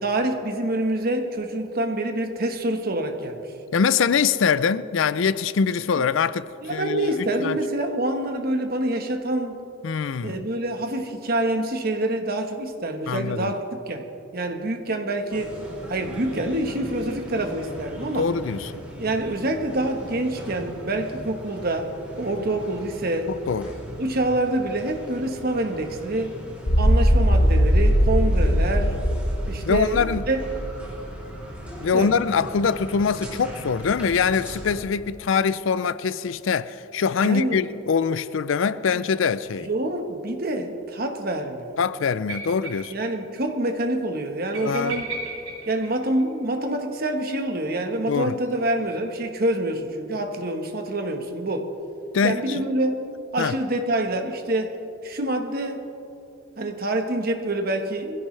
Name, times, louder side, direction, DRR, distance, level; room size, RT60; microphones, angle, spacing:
voice 1, 0.0-3.5 5.9-6.0 6.6-9.6 10.2-15.6 15.9-18.3 19.0-21.9 22.2-23.3 24.0-26.4 26.8-29.0 29.5-30.7 31.9-32.1 37.2-37.7 39.5-41.8 42.9-45.1 45.7-51.7 52.2-53.1 53.3-54.8 55.0-55.8 56.6-58.3, right 1 dB, 45° right, 1.3 m, -26 dB
voice 2, 3.7-7.6 9.8-10.4 13.1-13.5 18.2-18.7 23.5-23.7 29.6-30.2 31.8-39.7 41.8-42.9 44.6-45.0 48.1-48.4 52.1-52.6 53.4-53.5, left 6 dB, 70° left, 0.4 m, -23 dB
sound 1, 15.3-34.8, equal, 5° right, 3.0 m, -39 dB
sound 2, 26.7-30.9, equal, 90° left, 1.4 m, -20 dB
sound 3, 42.3-43.1 43.4-43.5 43.7-43.8 44.5-46.6 48.1-49.3, right 2 dB, 85° right, 3.6 m, -37 dB
21.5 x 16.0 x 3.3 m
head